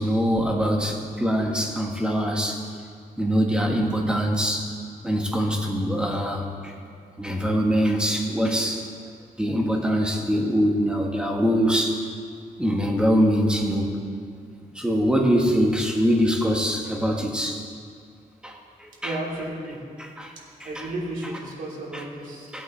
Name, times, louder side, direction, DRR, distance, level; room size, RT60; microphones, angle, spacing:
voice 1, 0.0-2.6 3.2-4.7 5.0-6.7 7.2-8.8 9.4-12.0 12.6-14.0 14.7-17.6 18.4-19.2 20.0-20.3 20.6-20.9 21.9-22.0 22.5-22.6, equal, 5° right, 0 dB, 1.4 m, -23 dB
voice 2, 19.0-19.8 20.6-22.5, right 1 dB, 70° right, -5 dB, 3.2 m, -33 dB
17.5 x 8.4 x 3.3 m, 2.2 s
cardioid pair, 120°, 15 cm